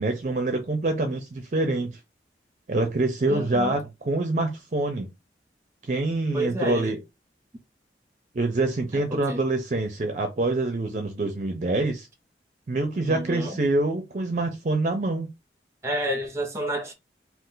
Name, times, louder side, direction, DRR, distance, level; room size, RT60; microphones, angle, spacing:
voice 1, 0.0-2.0 2.7-5.1 5.8-7.0 8.3-12.1 12.7-15.3, right 2 dB, 45° right, 0.5 m, -26 dB
voice 2, 3.3-3.8 6.3-6.9 9.1-9.4 13.1-13.6 15.8-16.9, equal, 15° right, 0.9 m, -30 dB
2.4 x 2.4 x 3.7 m
head